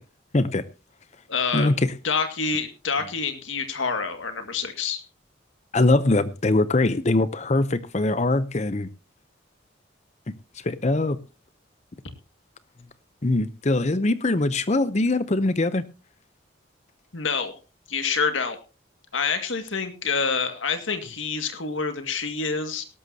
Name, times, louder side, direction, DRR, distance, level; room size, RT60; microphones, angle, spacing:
voice 1, 0.3-0.7 1.5-1.9 5.7-8.9 10.5-11.2 13.2-15.8, left 2 dB, 35° left, 0.7 m, -22 dB
voice 2, 1.3-1.7 2.0-5.0 17.1-17.6 17.9-18.6 19.1-22.8, left 5 dB, 80° left, 2.0 m, -27 dB
17.5 x 13.0 x 2.8 m
head